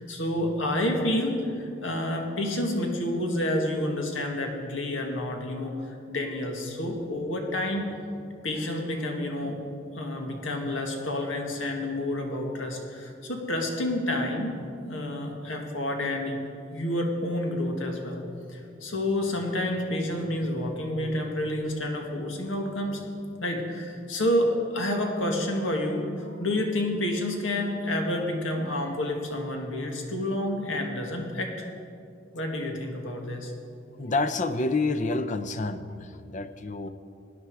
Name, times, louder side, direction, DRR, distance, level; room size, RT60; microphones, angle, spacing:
voice 1, 0.1-5.7 6.1-7.9 8.4-9.6 9.9-14.6 14.8-16.4 16.7-18.2 18.5-23.0 23.4-31.5 32.3-33.5, left 1 dB, 90° left, 2 dB, 1.9 m, -29 dB
voice 2, 34.0-36.9, left 3 dB, 40° left, 11 dB, 0.6 m, -28 dB
17.5 x 10.5 x 4.8 m, 2.5 s
head